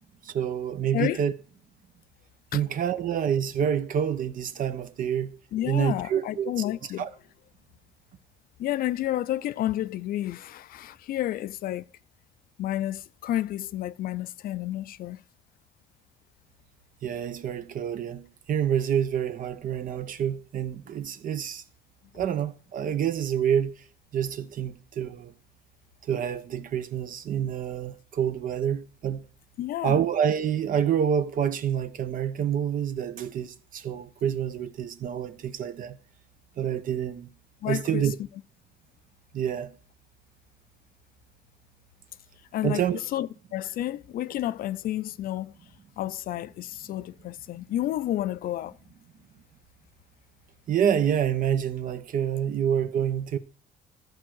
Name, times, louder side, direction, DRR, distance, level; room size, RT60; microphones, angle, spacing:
voice 1, 0.2-1.3 2.5-5.4 5.7-6.5 7.0-7.1 17.0-21.6 22.1-23.8 24.1-25.3 26.0-29.2 29.8-36.0 36.6-37.3 37.6-38.1 39.3-39.8 42.6-43.0 50.7-53.4, right 9 dB, 55° right, 0.9 m, -27 dB
voice 2, 5.5-7.0 8.6-11.8 12.6-15.2 29.6-30.0 37.6-38.1 42.5-42.8 43.1-45.5 46.0-48.8, left 13 dB, 60° left, 0.5 m, -30 dB
13.5 x 4.7 x 6.3 m
cardioid pair, 110°, 17 cm